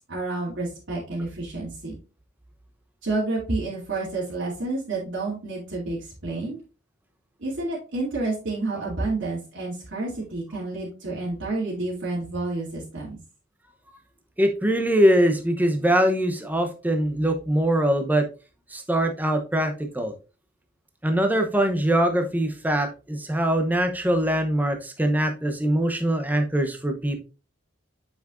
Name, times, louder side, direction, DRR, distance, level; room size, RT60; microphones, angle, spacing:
voice 1, 0.1-2.0 3.0-6.6 7.4-13.2, right 2 dB, 60° right, -7 dB, 2.5 m, -29 dB
voice 2, 14.4-18.3 18.7-20.1 21.0-27.2, right 1 dB, 10° right, 5 dB, 0.8 m, -22 dB
7.6 x 5.9 x 2.5 m, 0.32 s
head